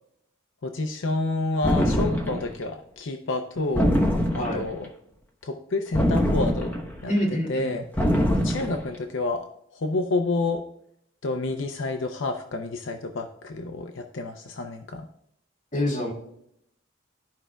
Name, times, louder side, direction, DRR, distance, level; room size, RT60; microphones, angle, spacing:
voice 1, 0.6-3.9 4.3-4.9 5.4-6.7 7.0-7.1 7.5-7.8 8.4-10.6 11.2-15.1, left 2 dB, 75° left, 5 dB, 0.6 m, -29 dB
sound 1, 1.6-2.5 3.8-4.7 5.9-7.0 8.0-8.8, equal, 10° left, 0.9 m, -23 dB
voice 2, 7.1-7.8 15.7-16.1, left 1 dB, 35° left, -2 dB, 2.2 m, -26 dB
13.5 x 5.0 x 2.3 m, 0.74 s
head